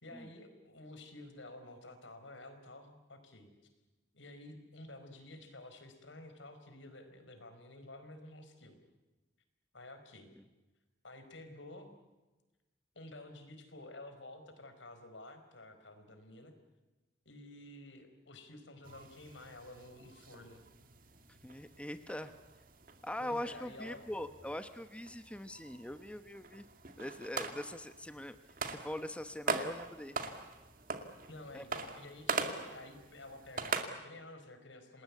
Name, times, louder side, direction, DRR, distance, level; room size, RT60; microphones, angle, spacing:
voice 1, 0.0-3.5 4.1-8.8 9.7-10.3 11.0-11.9 12.9-16.5 17.2-20.6 23.2-24.1 31.3-35.0, left 2 dB, 85° left, 7 dB, 4.7 m, -51 dB
sound 1, 18.8-33.8, right 4 dB, 50° right, 2.3 m, -42 dB
voice 2, 21.4-22.3 23.0-26.7 27.0-28.4 28.7-30.2 31.5-31.6, left 1 dB, 5° left, 9 dB, 0.9 m, -42 dB
28.0 x 20.0 x 8.4 m, 1.1 s
head